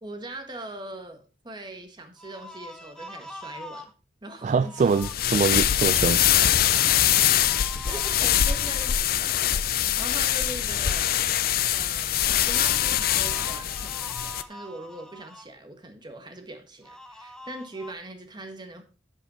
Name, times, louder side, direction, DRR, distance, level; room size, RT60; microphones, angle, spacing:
voice 1, 0.0-3.9 4.2-5.0 7.8-11.2 11.7-18.8, right 2 dB, 25° right, 1.5 m, -41 dB
sound 1, 2.2-3.9 4.4-5.1 7.3-9.0 12.4-15.5 16.8-17.9, left 1 dB, 5° left, 0.8 m, -44 dB
voice 2, 4.4-6.6, right 5 dB, 45° right, 0.3 m, -24 dB
sound 2, 4.9-14.4, left 11 dB, 60° left, 0.5 m, -23 dB
10.5 x 5.4 x 4.3 m
head